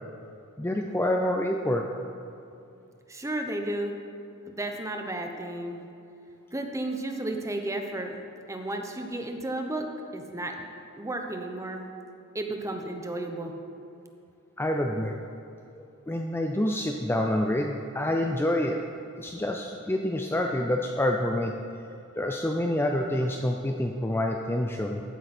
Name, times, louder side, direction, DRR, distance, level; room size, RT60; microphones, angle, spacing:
voice 1, 0.6-1.9 14.6-15.1 15.7-18.8 19.2-21.5 22.2-25.0, left 1 dB, 10° left, 2 dB, 0.5 m, -27 dB
voice 2, 3.1-3.9 4.6-5.8 6.5-8.2 8.5-10.7 10.9-11.9 12.3-13.6, right 1 dB, 15° right, 3 dB, 1.0 m, -33 dB
14.5 x 9.2 x 4.3 m, 2.6 s
head